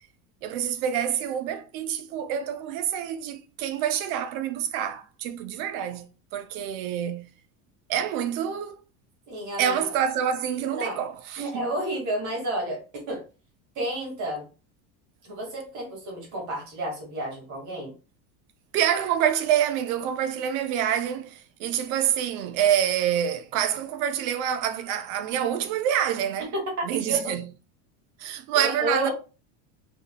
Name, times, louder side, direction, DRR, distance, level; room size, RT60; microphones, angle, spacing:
voice 1, 0.4-7.3 7.9-8.8 9.6-11.7 18.7-26.5 26.8-27.5 28.2-29.1, right 9 dB, 75° right, 0.8 m, -27 dB
voice 2, 9.3-9.8 10.7-11.0 11.4-12.8 13.1-13.2 13.8-14.5 15.2-17.9 26.5-26.6 26.9-27.3 28.5-29.1, right 1 dB, 40° right, 2.1 m, -31 dB
4.0 x 3.9 x 2.2 m
cardioid pair, 155°, 42 cm